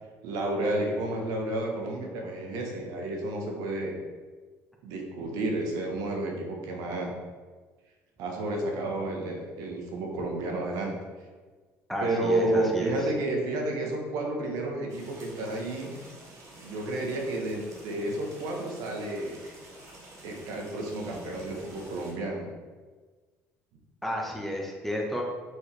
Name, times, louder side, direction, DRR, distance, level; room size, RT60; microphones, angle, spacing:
voice 1, 0.2-4.0 4.8-7.1 8.2-10.9 12.0-15.9 16.6-19.4 20.2-22.5, right 1 dB, 75° right, 1 dB, 1.3 m, -31 dB
voice 2, 11.9-13.1 24.0-25.2, equal, 5° left, -1 dB, 1.2 m, -32 dB
sound 1, 14.9-22.1, right 1 dB, 55° right, 1.8 m, -49 dB
6.3 x 4.4 x 3.4 m, 1.4 s
supercardioid pair, 80°, 6 cm